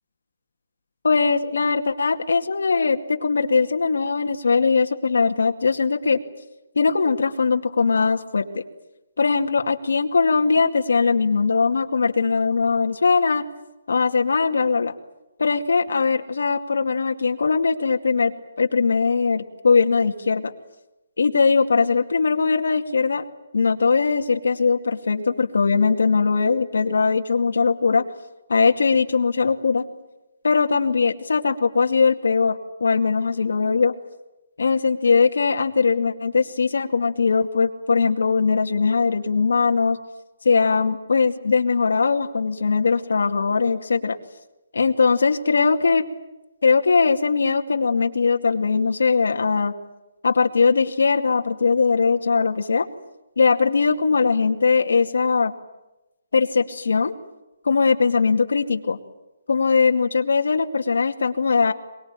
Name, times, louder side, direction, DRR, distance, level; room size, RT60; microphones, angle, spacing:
voice 1, 1.0-6.2 6.8-8.6 9.2-13.4 13.9-14.9 15.4-20.5 21.2-23.2 23.5-28.0 28.5-29.8 30.4-33.9 34.6-40.0 40.4-44.2 44.7-46.0 46.6-49.7 50.2-52.9 53.4-55.5 56.3-57.1 57.6-59.0 59.5-61.7, left 4 dB, 80° left, 4 dB, 2.3 m, -20 dB
23.5 x 22.0 x 9.2 m, 0.99 s
hypercardioid pair, 175°, 0 cm